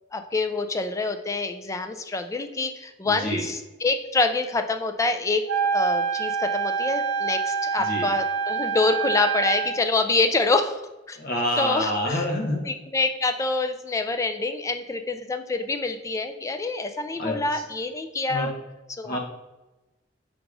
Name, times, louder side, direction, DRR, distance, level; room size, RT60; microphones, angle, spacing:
voice 1, 0.1-5.4 5.7-10.8 11.1-11.2 11.6-12.3 12.7-18.5 19.0-19.2, left 3 dB, 15° left, 7 dB, 0.3 m, -26 dB
voice 2, 3.0-3.4 7.8-8.1 11.2-12.7 17.2-17.6 18.3-18.5 19.0-19.2, left 1 dB, 50° left, 0 dB, 0.9 m, -27 dB
Wind instrument woodwind instrument, 5.5-9.9, right 6 dB, 80° right, 0.5 m, -26 dB
3.8 x 2.4 x 4.6 m, 1.0 s
head